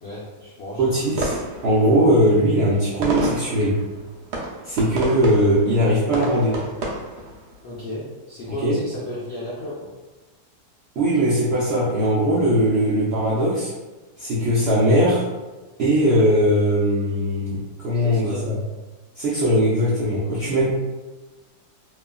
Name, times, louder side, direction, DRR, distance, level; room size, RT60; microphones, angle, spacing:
voice 1, 0.0-1.0 7.6-9.9 17.9-18.6 20.2-20.7, left 1 dB, 75° left, -7 dB, 0.6 m, -34 dB
voice 2, 0.8-3.8 4.7-6.5 8.6-8.7 11.0-13.7 14.2-15.2 15.8-18.6 19.2-20.7, equal, 75° right, -8 dB, 0.6 m, -20 dB
sound 1, 1.0-7.7, right 2 dB, 90° right, 1.2 m, -30 dB
3.0 x 2.3 x 2.2 m, 1.2 s
omnidirectional pair, 1.7 m